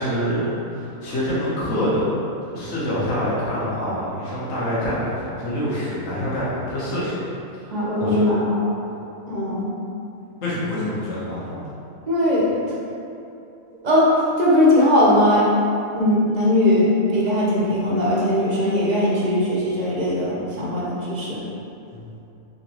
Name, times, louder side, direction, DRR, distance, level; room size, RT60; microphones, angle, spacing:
voice 1, 0.0-2.2 2.5-7.3 8.0-8.4 10.4-11.6 21.9-22.1, equal, 65° left, -9 dB, 1.4 m, -25 dB
voice 2, 7.7-8.6 9.3-9.7 12.1-12.7 13.8-14.1 14.4-15.4 16.0-21.4, left 1 dB, 45° right, -6 dB, 0.6 m, -19 dB
3.9 x 3.7 x 3.0 m, 2.7 s
omnidirectional pair, 1.5 m